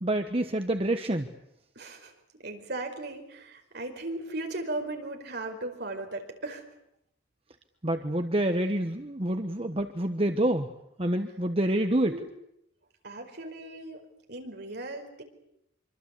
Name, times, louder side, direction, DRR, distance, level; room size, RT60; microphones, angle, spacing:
voice 1, 0.0-1.3 7.8-10.7 11.0-12.1, right 1 dB, 30° right, 7 dB, 1.2 m, -27 dB
voice 2, 1.7-2.1 2.4-6.6 12.0-12.2 13.0-14.0 14.3-15.2, right 2 dB, 55° right, 4 dB, 4.9 m, -37 dB
25.5 x 25.0 x 8.4 m, 0.79 s
head